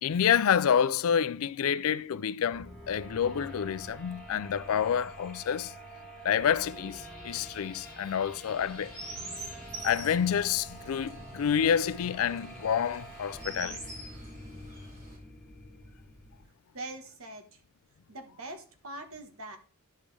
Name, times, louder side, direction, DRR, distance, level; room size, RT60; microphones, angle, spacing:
voice 1, 0.0-5.7 6.2-8.9 9.8-13.8, left 8 dB, 70° left, 0.4 m, -28 dB
sound 1, 2.5-16.4, right 1 dB, 5° left, 3.0 m, -47 dB
Chirp tweet, 8.5-15.2, right 2 dB, 50° right, 5.2 m, -45 dB
voice 2, 16.7-17.6 18.1-19.6, right 2 dB, 70° right, 1.4 m, -43 dB
11.5 x 5.3 x 3.3 m
head